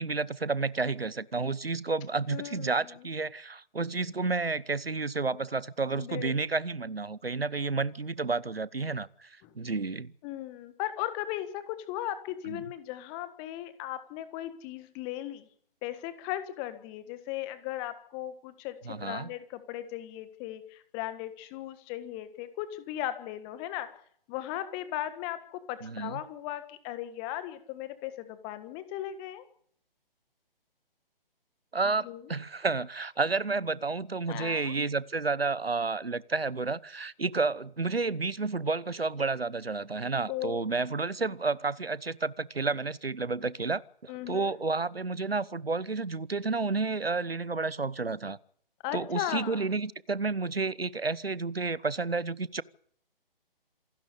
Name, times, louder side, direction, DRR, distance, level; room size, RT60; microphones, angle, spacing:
voice 1, 0.0-10.1 12.5-12.6 18.8-19.3 25.8-26.2 31.7-48.4 48.9-52.6, right 3 dB, 85° right, 1.1 m, -31 dB
voice 2, 2.3-3.0 5.9-6.3 9.4-9.5 10.2-15.5 15.8-23.9 24.3-29.4 31.8-32.3 34.3-34.7 40.3-40.6 44.1-44.5 48.8-49.7, left 13 dB, 15° left, 1.5 m, -37 dB
27.0 x 12.5 x 8.4 m
figure-of-eight pair, 140°, 29 cm